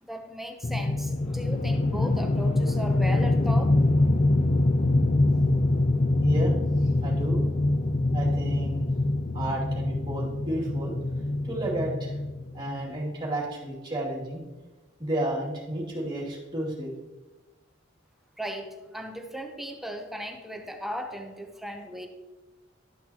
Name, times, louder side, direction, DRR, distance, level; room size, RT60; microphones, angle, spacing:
voice 1, 0.0-3.7 18.4-22.1, equal, ahead, 3 dB, 0.8 m, -36 dB
sound 1, 0.6-12.9, left 2 dB, 35° left, 0.4 m, -24 dB
voice 2, 6.2-6.6 7.0-7.5 8.1-8.9 9.3-10.9 11.4-12.1 12.5-14.4 15.0-16.9, right 1 dB, 25° right, -4 dB, 2.5 m, -32 dB
12.0 x 6.0 x 2.9 m, 1.2 s
head